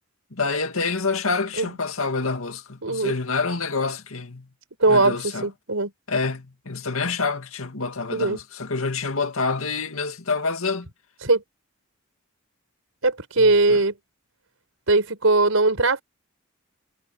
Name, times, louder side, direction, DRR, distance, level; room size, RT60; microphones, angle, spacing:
voice 1, 0.3-4.5 4.9-5.5 6.1-10.9 13.4-13.8, left 4 dB, 90° left, 2.2 m, -27 dB
voice 2, 2.8-3.1 4.8-5.9 8.1-8.4 11.2-11.4 13.0-13.9 14.9-16.0, right 2 dB, 80° right, 4.5 m, -20 dB
head